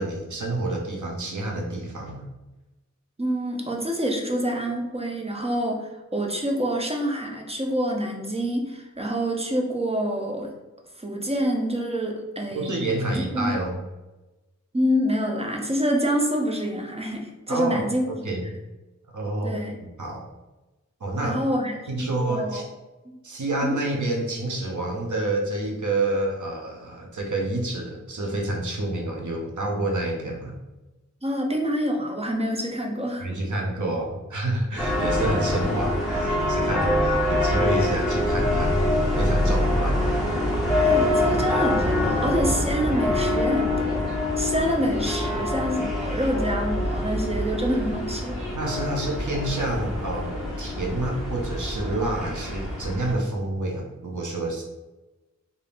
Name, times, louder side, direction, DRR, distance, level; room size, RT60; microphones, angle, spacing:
voice 1, 0.0-2.3 12.5-13.8 17.5-18.6 19.1-20.3 21.0-21.4 21.9-22.7 23.2-30.6 33.2-38.8 39.2-40.1 48.5-54.6, right 2 dB, 85° right, 0 dB, 0.7 m, -28 dB
voice 2, 3.2-10.5 11.0-12.7 13.1-13.5 14.7-18.3 19.4-19.8 21.2-22.6 23.1-23.2 23.6-23.8 31.2-33.2 40.8-44.1 44.4-48.4, equal, 20° right, 1 dB, 0.5 m, -27 dB
sound 1, 34.8-53.1, left 1 dB, ahead, 1.0 m, -25 dB
3.4 x 2.6 x 2.5 m, 1.1 s
wide cardioid pair, 40°, 29 cm